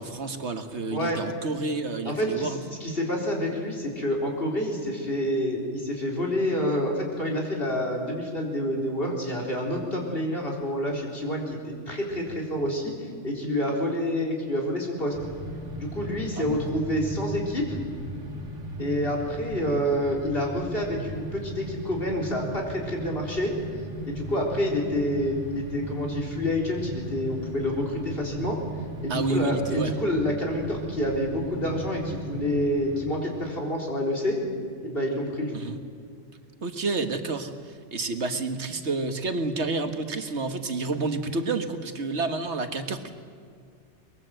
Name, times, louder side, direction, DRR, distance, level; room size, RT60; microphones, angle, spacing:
voice 1, 0.0-2.6 16.4-16.6 29.1-29.9 35.5-35.8 36.6-43.1, right 3 dB, 70° right, 7 dB, 1.7 m, -29 dB
voice 2, 0.9-1.2 2.0-15.2 15.8-17.8 18.8-23.5 24.0-28.6 29.0-34.4 34.8-35.5, left 1 dB, 50° left, -1 dB, 4.5 m, -28 dB
sound 1, 15.1-33.1, right 2 dB, 90° right, 2.4 m, -37 dB
23.5 x 21.5 x 7.8 m, 2.2 s
omnidirectional pair, 1.2 m